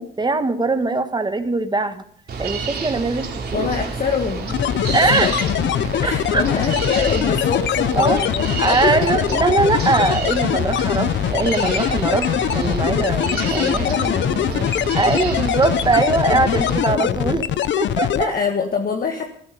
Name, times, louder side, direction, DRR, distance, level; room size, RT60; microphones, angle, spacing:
voice 1, 0.0-2.0 2.4-3.3 4.9-5.3 6.0-6.5 7.9-8.2 8.6-13.9 14.9-17.5 17.8-18.3, right 3 dB, 20° right, 9 dB, 1.3 m, -21 dB
sound 1, 2.3-16.8, right 4 dB, 50° right, 2.9 m, -29 dB
voice 2, 3.5-5.3 5.7-8.9 12.9-14.8 16.3-17.4 18.1-19.3, left 6 dB, 45° left, 3 dB, 1.6 m, -26 dB
sound 2, 4.5-18.3, left 11 dB, 70° left, 0.7 m, -22 dB
15.5 x 14.0 x 5.4 m, 0.64 s
cardioid pair, 90°, 20 cm